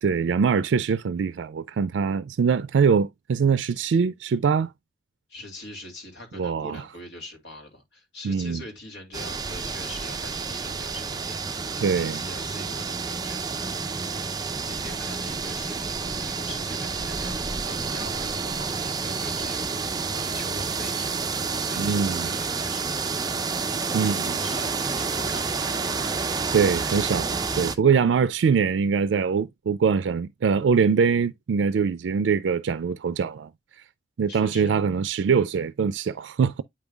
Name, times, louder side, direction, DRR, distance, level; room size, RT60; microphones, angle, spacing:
voice 1, 0.0-4.7 6.3-6.8 8.2-8.6 11.8-12.2 21.8-22.3 23.9-24.4 26.5-33.5 34.2-36.6, right 6 dB, 90° right, 0.4 m, -23 dB
voice 2, 5.3-26.6 34.3-34.8, left 2 dB, 70° left, 2.4 m, -43 dB
Wind in the Leaves, 9.1-27.7, right 4 dB, 20° right, 0.5 m, -29 dB
8.5 x 5.4 x 2.3 m
head